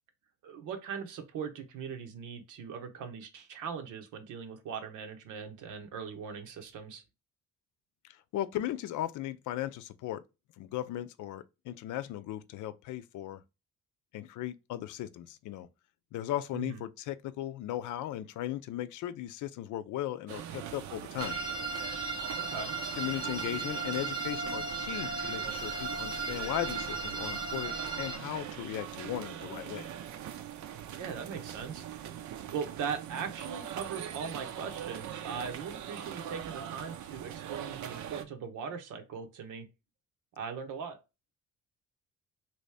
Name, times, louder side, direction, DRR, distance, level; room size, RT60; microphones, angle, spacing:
voice 1, 0.4-7.0 16.5-16.8 22.5-22.8 31.0-32.2 32.5-39.7 40.4-41.0, right 6 dB, 85° right, 0.9 m, -40 dB
voice 2, 8.0-10.2 10.6-13.4 14.1-15.7 16.1-21.4 23.0-29.9, left 13 dB, 75° left, 0.5 m, -37 dB
sound 1, 20.3-38.2, right 10 dB, 70° right, 0.6 m, -42 dB
sound 2, 21.2-28.2, right 3 dB, 15° right, 0.7 m, -36 dB
3.0 x 2.7 x 3.2 m
cardioid pair, 90°, 30 cm